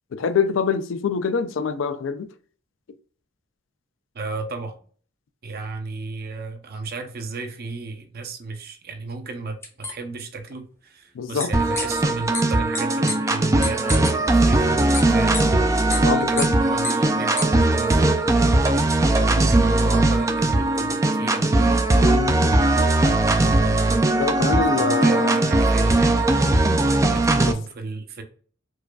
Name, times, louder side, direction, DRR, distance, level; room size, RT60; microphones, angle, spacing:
voice 1, 0.1-2.3 11.1-11.5 16.0-16.5 22.0-22.4 24.2-25.4 27.5-27.6, left 6 dB, 75° left, 0.4 m, -25 dB
voice 2, 4.1-4.8 5.4-15.4 15.9-18.0 19.3-21.4 24.8-26.3 26.6-26.7 27.1-28.2, right 3 dB, 50° right, 0.6 m, -34 dB
sound 1, 9.6-9.9 11.4-11.5 11.7-11.8 12.3-12.4 12.7-12.8 13.1-13.2 13.6-14.1 14.9-15.0 15.3-15.4 15.9-16.0 16.4-16.5 16.8-16.9 17.4-17.5, left 3 dB, 15° left, 0.6 m, -27 dB
sound 2, 11.5-27.5, right 2 dB, 15° right, 0.3 m, -19 dB
4.7 x 2.4 x 2.2 m
head